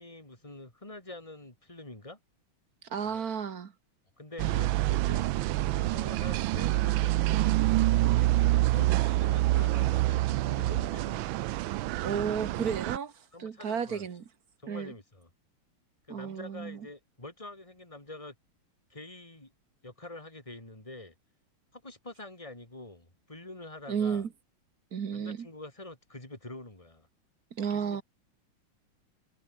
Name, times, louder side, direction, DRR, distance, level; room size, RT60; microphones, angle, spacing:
voice 1, 0.0-2.2 3.0-3.3 4.2-5.2 5.7-7.6 8.1-11.6 13.3-14.0 14.6-15.3 16.1-18.3 18.9-19.5 19.8-21.1 21.7-24.2 25.1-27.1 27.7-28.0, left 2 dB, 15° left, 4.4 m, -46 dB
voice 2, 2.9-3.7 12.0-14.2 14.7-14.9 16.1-16.8 23.9-24.3 24.9-25.5 27.5-28.0, right 7 dB, 45° right, 1.7 m, -33 dB
sound 1, 4.4-13.0, right 16 dB, 75° right, 1.3 m, -26 dB
omnidirectional pair, 2.3 m